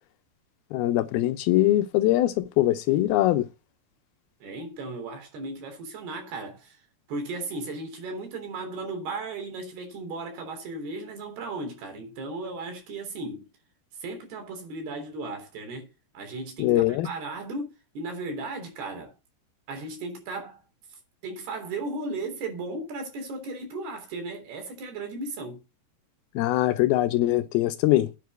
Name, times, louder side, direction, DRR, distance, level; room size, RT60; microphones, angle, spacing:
voice 1, 0.7-3.5 16.6-17.1 26.4-28.1, left 15 dB, 80° left, 2.4 m, -22 dB
voice 2, 4.4-6.8 7.1-13.5 14.0-15.9 16.1-19.1 19.7-20.6 21.2-25.6, right 2 dB, 70° right, 5.3 m, -36 dB
9.4 x 5.5 x 8.0 m
omnidirectional pair, 4.7 m